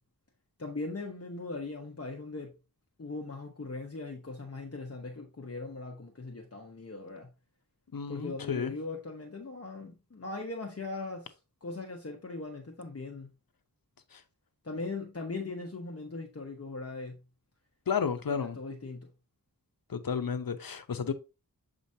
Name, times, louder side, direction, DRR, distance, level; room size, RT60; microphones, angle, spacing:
voice 1, 0.6-2.5 3.0-7.3 8.1-13.3 14.6-17.2 18.3-19.1, left 3 dB, 40° left, 1.0 m, -39 dB
voice 2, 7.9-8.7 14.1-14.2 17.9-18.6 19.9-21.1, left 6 dB, 70° left, 0.8 m, -32 dB
7.4 x 5.0 x 2.7 m
wide cardioid pair, 75°, 36 cm